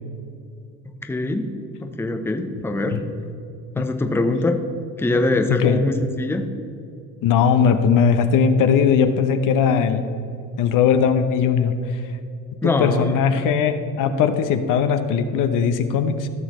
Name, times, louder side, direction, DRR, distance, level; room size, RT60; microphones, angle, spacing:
voice 1, 1.1-1.5 1.8-3.0 3.7-4.6 5.0-6.5 12.6-13.2, left 2 dB, 5° left, 5 dB, 0.7 m, -22 dB
voice 2, 5.5-5.8 7.2-10.1 10.6-11.8 12.6-16.3, left 7 dB, 55° left, 8 dB, 0.8 m, -19 dB
15.5 x 6.3 x 3.1 m, 2.5 s
supercardioid pair, 95°, 37 cm